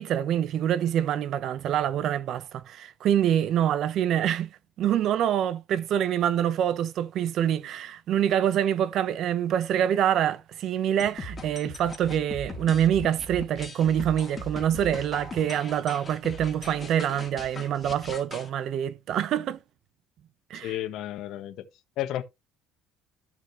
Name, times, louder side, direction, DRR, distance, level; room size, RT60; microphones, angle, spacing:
voice 1, 0.0-4.5 4.8-19.6 20.5-20.7, right 10 dB, 55° right, 1.2 m, -26 dB
sound 1, 11.0-18.5, left 1 dB, 20° left, 3.1 m, -39 dB
voice 2, 20.5-21.7 22.0-22.2, left 13 dB, 65° left, 1.5 m, -32 dB
13.5 x 6.3 x 3.3 m
cardioid pair, 125°, 0 cm